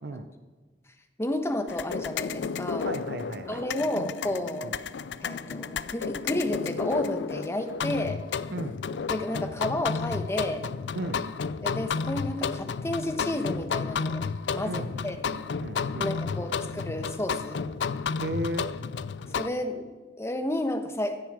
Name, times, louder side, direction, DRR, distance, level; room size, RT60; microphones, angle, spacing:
voice 1, 1.2-2.9 3.5-4.8 5.2-8.2 9.1-10.7 11.6-14.3 14.5-15.2 16.0-17.7 19.3-19.9 20.2-21.2, left 1 dB, 15° left, 6 dB, 1.1 m, -31 dB
sound 1, 1.7-19.5, left 5 dB, 80° left, 0.4 m, -32 dB
voice 2, 2.8-3.6 4.6-4.7 8.5-8.8 10.9-11.2 14.6-16.6 18.2-18.7, right 1 dB, 65° right, 8 dB, 0.7 m, -35 dB
16.0 x 7.9 x 4.9 m, 1.3 s
head